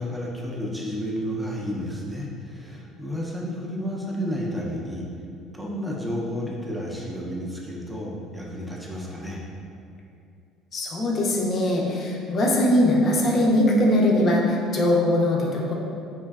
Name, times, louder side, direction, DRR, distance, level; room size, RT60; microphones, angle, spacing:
voice 1, 0.0-5.1 5.5-9.4, equal, 5° right, -3 dB, 0.4 m, -31 dB
voice 2, 10.7-15.7, left 1 dB, 45° left, -2 dB, 0.4 m, -21 dB
3.0 x 2.6 x 2.3 m, 2.5 s
supercardioid pair, 85°, 0 cm